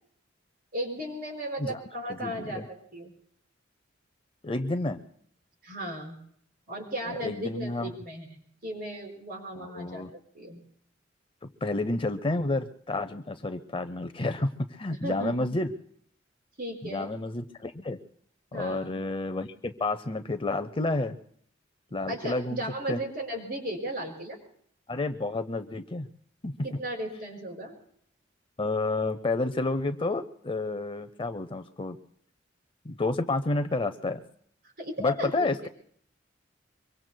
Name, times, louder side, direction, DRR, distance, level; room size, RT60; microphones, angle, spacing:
voice 1, 0.7-3.1 5.6-6.2 6.7-10.1 10.3-10.6 14.9-15.4 16.6-17.1 18.5-18.9 22.1-24.4 26.6-27.7 34.8-35.5, equal, 50° right, 1 dB, 4.8 m, -35 dB
voice 2, 2.1-2.6 4.4-5.0 7.0-7.9 9.6-10.1 11.4-15.7 16.8-18.0 18.5-21.2 21.9-22.6 22.9-23.0 24.9-26.1 26.4-26.5 28.6-32.0 32.8-34.2 35.0-35.7, left 2 dB, 25° left, 9 dB, 0.6 m, -30 dB
24.5 x 23.5 x 2.2 m, 0.63 s
head